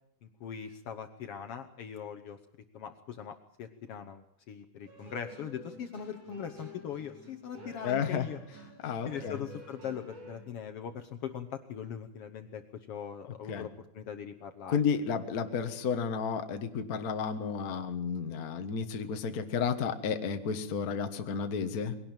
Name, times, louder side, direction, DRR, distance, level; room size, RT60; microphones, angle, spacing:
voice 1, 0.2-2.4 2.7-8.4 9.0-14.8, left 8 dB, 60° left, 8 dB, 1.7 m, -41 dB
sound 1, 4.9-10.4, equal, 80° right, 7.0 m, -49 dB
voice 2, 7.8-8.3 8.8-9.4 13.5-13.7 14.7-22.0, left 6 dB, 45° left, 7 dB, 1.3 m, -32 dB
21.5 x 17.5 x 8.9 m, 0.71 s
omnidirectional pair, 3.5 m